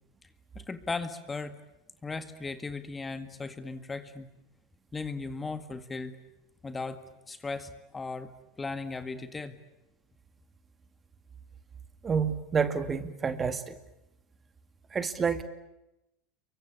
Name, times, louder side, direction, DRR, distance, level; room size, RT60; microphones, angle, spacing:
voice 1, 0.6-1.6 2.0-4.3 4.9-6.2 6.6-7.0 7.3-8.3 8.6-9.6, left 3 dB, 15° left, 10 dB, 1.9 m, -37 dB
voice 2, 12.0-13.7 14.9-15.4, right 6 dB, 25° right, 10 dB, 2.2 m, -28 dB
29.0 x 23.5 x 8.6 m, 0.91 s
supercardioid pair, 120°, 0 cm